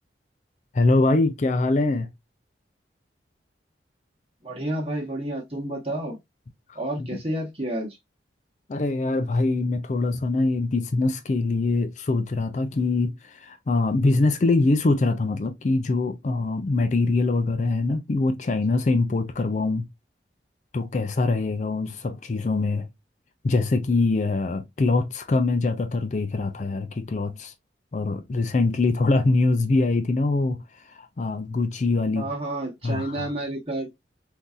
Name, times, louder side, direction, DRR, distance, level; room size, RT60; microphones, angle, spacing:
voice 1, 0.7-2.1 6.7-7.1 8.7-19.9 20.7-22.9 23.4-27.5 27.9-30.6 31.0-32.3 32.8-33.3, left 3 dB, 40° left, 0.4 m, -23 dB
voice 2, 4.4-6.2 6.7-8.0 32.1-33.9, right 1 dB, 30° right, 1.2 m, -30 dB
3.8 x 2.7 x 2.3 m
head